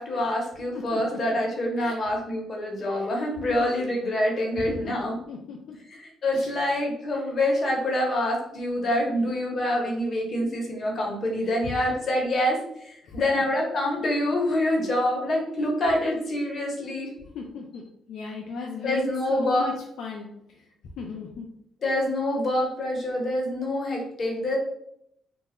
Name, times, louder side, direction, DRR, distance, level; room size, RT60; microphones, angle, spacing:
voice 1, 0.0-5.2 5.9-12.6 13.1-17.1 18.8-19.7 21.8-24.6, left 1 dB, 45° left, -1 dB, 0.9 m, -26 dB
voice 2, 0.7-1.4 1.8-2.0 2.9-3.1 3.6-3.7 4.6-5.8 6.3-6.5 7.1-7.3 11.4-11.7 13.0-13.4 17.3-21.6, left 5 dB, 75° left, 0 dB, 0.3 m, -37 dB
2.3 x 2.0 x 3.5 m, 0.75 s
cardioid pair, 90°, 0 cm